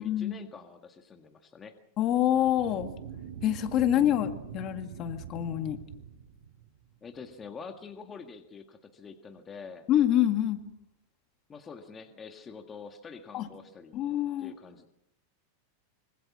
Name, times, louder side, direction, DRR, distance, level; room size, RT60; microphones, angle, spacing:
voice 1, 0.0-1.8 7.0-9.9 11.5-13.9 14.4-14.9, left 5 dB, 20° left, 5 dB, 1.8 m, -46 dB
voice 2, 2.0-2.9 3.4-5.8 9.9-10.6 13.3-13.5 13.9-14.5, left 11 dB, 35° left, 7 dB, 2.0 m, -26 dB
sound 1, 2.0-7.0, right 8 dB, 85° right, 3.8 m, -44 dB
25.5 x 24.5 x 6.2 m, 0.78 s
supercardioid pair, 145°, 0 cm